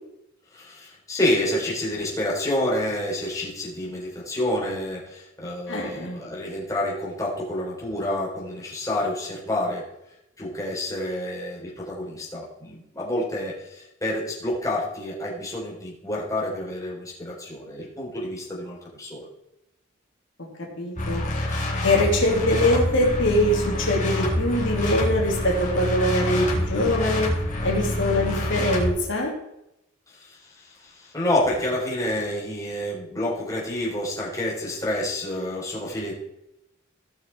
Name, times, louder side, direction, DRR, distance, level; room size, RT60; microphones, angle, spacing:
voice 1, 0.5-9.9 10.4-19.3 30.1-36.1, left 1 dB, 15° left, -5 dB, 3.8 m, -28 dB
voice 2, 5.7-6.2 20.4-21.2 21.8-27.3 27.6-29.3, left 1 dB, 65° left, -2 dB, 2.9 m, -23 dB
sound 1, 21.0-28.9, left 1 dB, 40° left, 3.7 m, -27 dB
17.0 x 6.3 x 4.6 m, 0.84 s
head